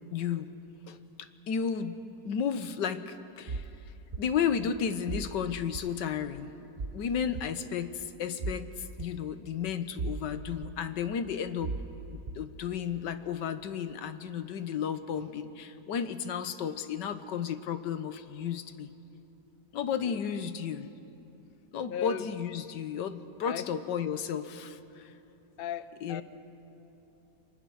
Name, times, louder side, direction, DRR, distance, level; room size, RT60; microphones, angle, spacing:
voice 1, 0.1-0.5 0.9-1.0 1.5-3.6 4.2-6.5 6.9-8.7 9.0-11.7 12.1-18.9 19.7-20.9 21.7-25.1 26.0-26.2, left 7 dB, 80° left, 10 dB, 1.6 m, -33 dB
sound 1, 3.5-3.7 4.1-4.2 5.1-5.3 5.7-5.9 6.8-7.0 7.3-7.4 8.4-8.6 9.0-9.1 10.0-10.3 10.6-10.7 11.6-11.9 12.3-12.4, right 4 dB, 40° right, 0.8 m, -35 dB
voice 2, 21.9-22.3 23.4-23.7 25.6-26.2, left 9 dB, 60° left, 13 dB, 0.6 m, -37 dB
29.5 x 23.0 x 6.4 m, 2.9 s
omnidirectional pair, 1.9 m